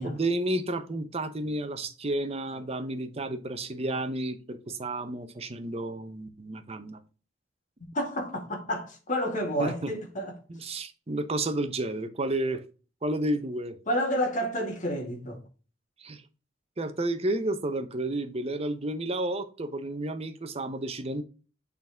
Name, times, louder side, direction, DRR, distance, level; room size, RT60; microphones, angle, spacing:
voice 1, 0.0-7.0 9.6-9.9 10.5-12.6 13.0-13.8 16.0-16.2 16.8-21.2, right 1 dB, 35° right, 0.8 m, -31 dB
voice 2, 7.9-10.3 13.9-15.4, equal, 45° left, 2.0 m, -30 dB
6.7 x 4.1 x 3.5 m
head